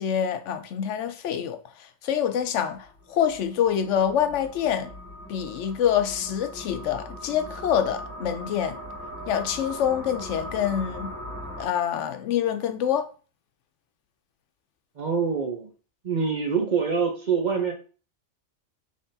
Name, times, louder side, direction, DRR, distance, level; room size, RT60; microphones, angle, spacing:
voice 1, 0.0-4.9 5.3-8.8 9.3-11.1 11.6-13.1, left 9 dB, 75° left, 0.9 m, -26 dB
sound 1, 2.8-11.7, equal, 5° left, 1.9 m, -40 dB
voice 2, 15.0-15.7 16.0-17.7, right 5 dB, 45° right, 0.7 m, -25 dB
5.7 x 3.3 x 2.7 m
omnidirectional pair, 1.3 m